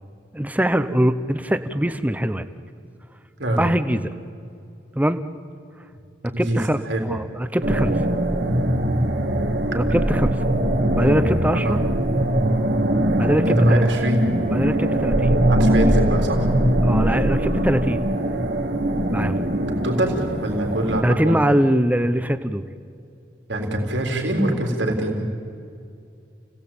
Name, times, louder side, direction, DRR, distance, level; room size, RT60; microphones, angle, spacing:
voice 1, 0.3-2.5 3.6-4.1 4.9-5.2 6.4-8.0 9.7-10.4 11.0-11.8 13.2-13.8 14.5-15.4 16.8-18.1 19.1-19.4 21.0-22.6, equal, 10° right, 11 dB, 0.9 m, -22 dB
voice 2, 6.3-7.1 9.7-9.8 11.6-11.8 13.5-14.3 15.5-16.5 19.8-21.4 23.5-25.3, right 1 dB, 80° right, 2 dB, 3.7 m, -23 dB
sound 1, 7.6-21.0, right 1 dB, 65° right, 2.4 m, -21 dB
29.5 x 17.5 x 8.8 m, 2.5 s
head